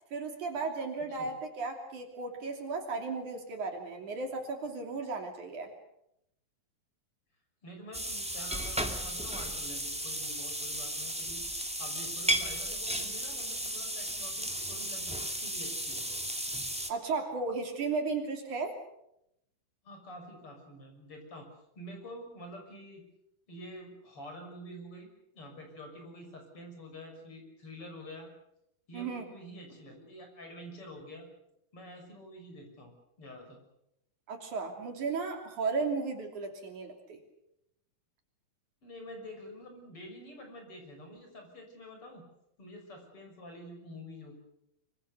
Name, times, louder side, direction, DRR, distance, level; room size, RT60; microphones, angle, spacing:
voice 1, 0.1-5.7 16.9-18.8 28.9-29.2 34.3-37.2, right 4 dB, 60° right, 4 dB, 4.4 m, -35 dB
voice 2, 7.6-11.4 11.8-16.1 19.8-21.5 21.7-23.0 23.5-25.1 25.3-28.3 28.9-31.3 31.7-33.6 38.8-42.3 42.6-44.4, equal, 40° left, 3 dB, 7.0 m, -47 dB
sound 1, 7.9-16.9, right 1 dB, 5° right, 0.9 m, -34 dB
25.5 x 25.0 x 6.8 m, 0.80 s
omnidirectional pair, 4.0 m